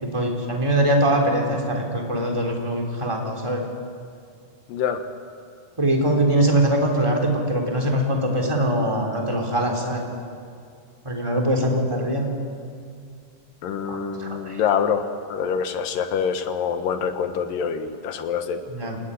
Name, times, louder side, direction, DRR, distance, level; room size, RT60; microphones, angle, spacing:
voice 1, 0.0-3.6 5.8-10.1 11.0-12.3 13.9-14.6 18.7-19.0, right 1 dB, 10° right, 1 dB, 3.3 m, -22 dB
voice 2, 4.7-5.0 13.6-18.6, left 7 dB, 85° left, 8 dB, 3.0 m, -25 dB
28.0 x 18.0 x 9.9 m, 2.3 s
omnidirectional pair, 3.8 m